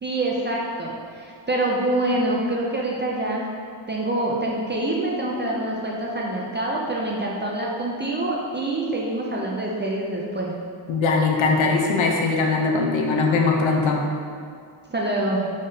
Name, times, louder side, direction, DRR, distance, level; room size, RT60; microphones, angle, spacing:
voice 1, 0.0-3.5 3.9-10.5 14.9-15.5, right 1 dB, 25° right, -3 dB, 0.3 m, -26 dB
voice 2, 10.9-14.0, left 4 dB, 75° left, 1 dB, 0.7 m, -21 dB
5.1 x 3.8 x 2.7 m, 2.2 s
wide cardioid pair, 155°, 48 cm